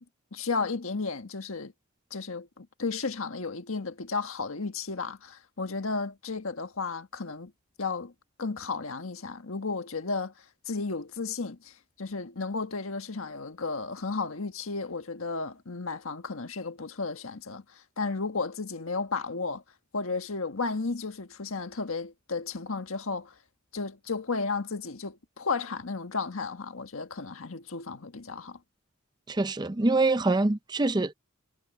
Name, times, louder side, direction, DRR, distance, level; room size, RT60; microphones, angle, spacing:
voice 1, 0.3-1.7 2.1-7.5 7.8-8.1 8.4-10.3 10.6-19.6 19.9-23.3 23.7-28.6, left 4 dB, 85° left, 1.5 m, -33 dB
voice 2, 29.3-31.1, right 2 dB, 20° right, 0.5 m, -25 dB
head